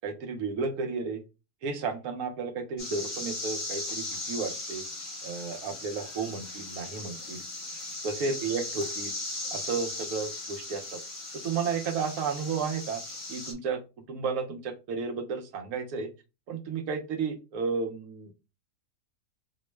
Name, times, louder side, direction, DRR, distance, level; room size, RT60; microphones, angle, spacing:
voice 1, 0.0-1.2 1.6-4.8 5.2-7.4 8.0-9.1 9.5-11.0 11.4-13.0 13.3-13.8 14.1-16.1 16.5-18.3, right 5 dB, 80° right, 5 dB, 1.2 m, -32 dB
sound 1, 2.8-13.5, left 2 dB, 60° left, 1.4 m, -38 dB
4.5 x 2.0 x 3.2 m, 0.29 s
omnidirectional pair, 1.5 m